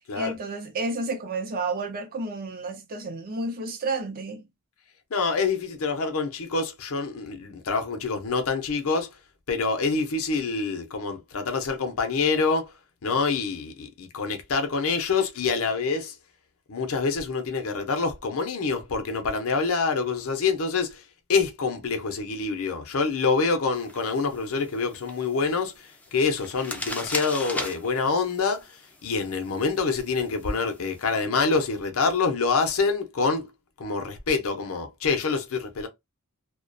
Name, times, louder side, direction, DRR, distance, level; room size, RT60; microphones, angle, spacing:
voice 1, 0.1-4.4, right 3 dB, 40° right, 0.5 m, -31 dB
voice 2, 5.1-9.1 9.5-12.7 13.0-16.2 16.7-21.0 21.3-33.5 33.8-35.9, left 4 dB, 70° left, 0.6 m, -26 dB
sound 1, 23.7-31.1, left 2 dB, 5° left, 0.4 m, -39 dB
2.3 x 2.1 x 2.5 m
head